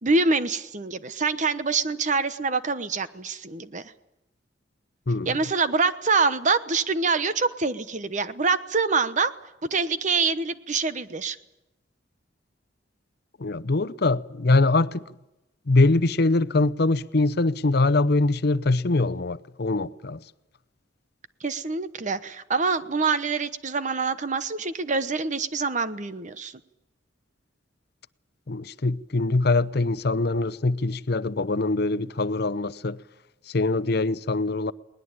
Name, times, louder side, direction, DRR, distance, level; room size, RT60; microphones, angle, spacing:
voice 1, 0.0-3.8 5.2-9.3 9.6-11.4 21.4-26.5, right 4 dB, 40° right, 1.0 m, -25 dB
voice 2, 13.4-15.0 15.7-20.2 28.5-33.0 33.5-34.7, left 2 dB, 55° left, 0.7 m, -23 dB
21.0 x 19.5 x 8.9 m
head